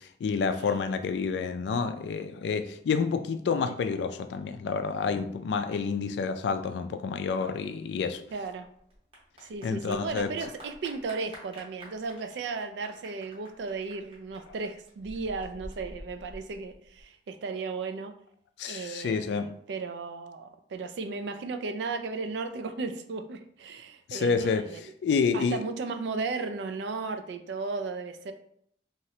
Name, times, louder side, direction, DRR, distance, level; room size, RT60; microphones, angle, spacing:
voice 1, 0.2-8.2 9.6-10.3 18.6-19.6 24.1-25.6, left 5 dB, 80° left, 0.3 m, -29 dB
Clapping / Applause, 8.0-17.0, equal, 30° right, 0.7 m, -48 dB
voice 2, 8.3-8.7 9.4-18.1 18.6-24.8 25.3-28.3, right 4 dB, 80° right, 0.3 m, -35 dB
3.0 x 2.5 x 2.7 m
head